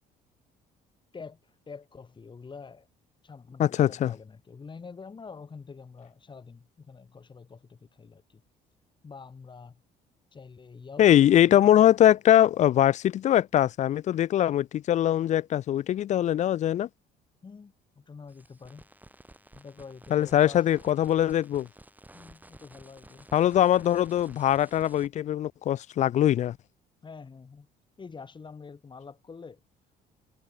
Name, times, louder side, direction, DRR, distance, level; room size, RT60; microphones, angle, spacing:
voice 1, 1.1-2.9 3.2-8.4 9.0-9.8 10.3-11.6 17.4-18.9 19.5-20.6 22.1-23.3 27.0-27.7 28.0-29.6, left 5 dB, 30° left, 4.1 m, -46 dB
voice 2, 3.6-4.1 11.0-16.9 20.1-21.7 23.3-26.6, left 11 dB, 45° left, 0.4 m, -22 dB
sound 1, 18.3-25.1, right 2 dB, 10° right, 7.0 m, -53 dB
cardioid pair, 110°, 17 cm